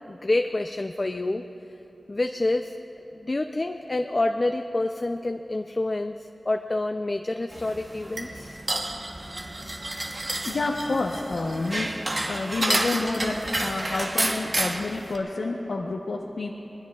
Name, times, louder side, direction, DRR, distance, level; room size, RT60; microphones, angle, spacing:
voice 1, 0.1-1.4 2.1-2.8 3.2-8.6, left 2 dB, 40° left, 5 dB, 0.5 m, -27 dB
sound 1, 7.5-15.2, right 1 dB, 30° right, 1.0 m, -30 dB
voice 2, 10.4-12.0 12.3-16.5, left 3 dB, 85° left, -1 dB, 1.0 m, -29 dB
25.5 x 20.5 x 2.4 m, 3.0 s
wide cardioid pair, 85°, 0 cm